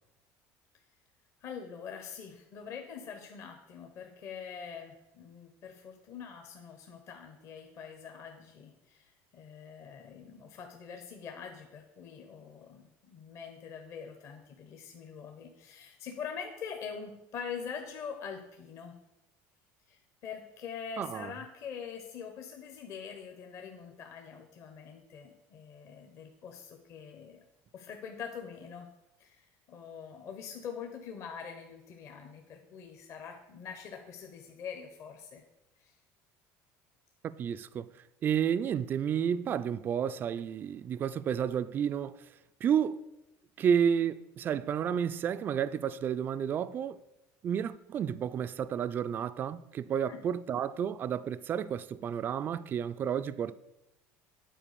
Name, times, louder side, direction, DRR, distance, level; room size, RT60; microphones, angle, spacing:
voice 1, 1.4-18.9 19.9-27.4 27.7-28.9 29.2-35.4 35.8-36.0 50.1-50.2, left 7 dB, 50° left, 1.0 m, -44 dB
voice 2, 21.0-21.3 37.4-37.9 38.2-42.1 42.6-43.0 43.6-47.0 47.4-53.5, right 8 dB, 30° right, 0.3 m, -31 dB
9.0 x 4.2 x 6.7 m
cardioid pair, 140°, 6 cm